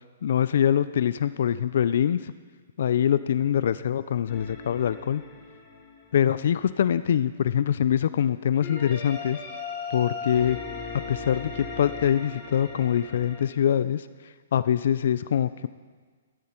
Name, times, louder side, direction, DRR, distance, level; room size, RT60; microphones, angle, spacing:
voice 1, 0.2-2.3 2.8-5.2 6.1-9.4 9.9-10.6 11.1-15.7, left 9 dB, 60° left, 14 dB, 0.4 m, -24 dB
sound 1, 4.3-6.7 8.6-13.4, left 4 dB, 25° left, 3.3 m, -38 dB
14.0 x 12.0 x 4.4 m, 1.5 s
hypercardioid pair, 160°, 0 cm